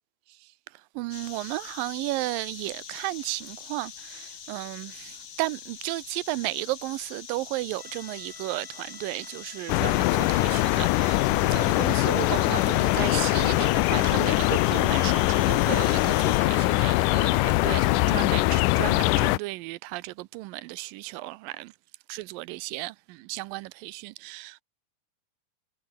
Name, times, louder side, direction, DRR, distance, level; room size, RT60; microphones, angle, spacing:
voice 1, 1.0-21.7 22.1-24.6, right 19 dB, 85° right, 2.4 m, -34 dB
sound 1, 1.1-16.4, left 8 dB, 45° left, 1.7 m, -43 dB
sound 2, 7.8-16.5, left 3 dB, 25° left, 4.4 m, -51 dB
sound 3, 9.7-19.4, left 20 dB, 80° left, 2.0 m, -22 dB
omnidirectional pair, 4.0 m